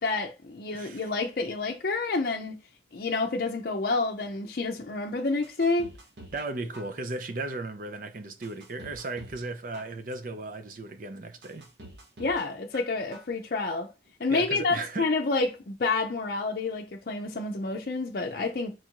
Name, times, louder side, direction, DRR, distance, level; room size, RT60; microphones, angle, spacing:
voice 1, 0.0-2.6 2.9-5.9 12.2-13.9 14.2-18.7, left 3 dB, 55° left, 0.5 m, -29 dB
voice 2, 0.7-1.1 6.3-11.7 14.3-15.1, right 2 dB, 50° right, 0.6 m, -36 dB
sound 1, 5.4-6.5 6.7-7.4 7.9-8.0 8.4-9.5 9.7-10.4 10.9-11.0 11.4-12.4 12.7-13.4 13.7-13.8, equal, 70° right, 1.3 m, -48 dB
4.5 x 2.5 x 4.4 m
head